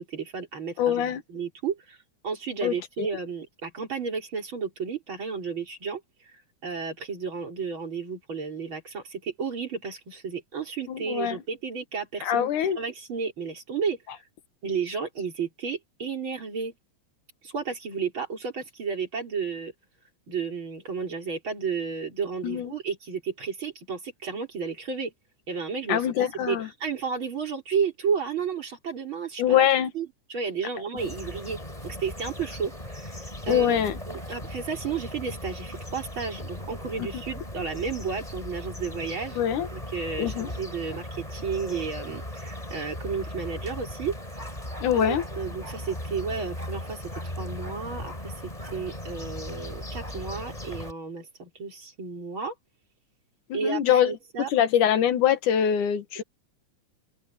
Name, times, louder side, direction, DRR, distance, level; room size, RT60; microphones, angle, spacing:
voice 1, 0.0-2.0 2.2-6.0 6.3-14.2 14.6-16.7 17.4-19.7 20.3-25.1 25.5-29.7 29.9-31.6 31.8-44.4 44.9-47.0 47.4-52.5 53.5-54.5, right 5 dB, 40° right, 4.6 m, -32 dB
voice 2, 0.8-1.2 2.6-3.1 10.9-11.4 12.2-12.8 22.4-22.7 25.9-26.7 29.4-29.9 33.5-34.0 39.4-39.7 40.2-40.5 44.8-45.2 53.5-54.1 54.5-56.2, left 10 dB, 85° left, 3.0 m, -23 dB
sound 1, 31.0-50.9, left 1 dB, 10° left, 5.8 m, -38 dB
open air
omnidirectional pair, 3.4 m